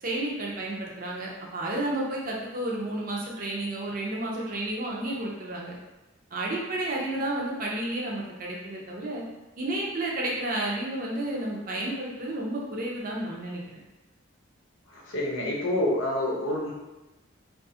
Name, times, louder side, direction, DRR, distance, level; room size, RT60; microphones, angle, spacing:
voice 1, 0.0-5.8 6.3-9.2 9.6-13.6, right 1 dB, 45° right, -3 dB, 0.5 m, -31 dB
voice 2, 14.9-16.7, left 1 dB, 85° left, -3 dB, 0.7 m, -27 dB
2.5 x 2.3 x 2.7 m, 1.0 s
head